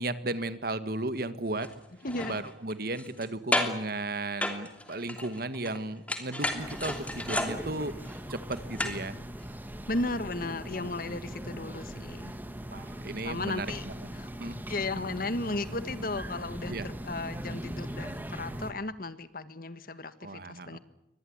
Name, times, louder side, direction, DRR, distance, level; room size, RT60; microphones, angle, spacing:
voice 1, 0.0-1.7 2.3-9.2 11.1-11.2 12.7-14.1 14.4-14.6 16.7-16.9 20.2-20.8, right 2 dB, 60° right, 12 dB, 1.8 m, -35 dB
sound 1, 1.6-1.7 2.0-3.3 3.5-3.9 4.4-5.8 6.1-9.1 9.4-9.5, left 1 dB, 10° left, 3.0 m, -32 dB
voice 2, 2.0-2.4 9.9-12.3 13.2-13.8 14.1-14.3 14.7-20.8, left 2 dB, 55° left, 13 dB, 1.6 m, -35 dB
sound 2, 6.6-18.7, equal, 10° right, 1.8 m, -40 dB
24.0 x 20.5 x 9.6 m, 0.86 s
head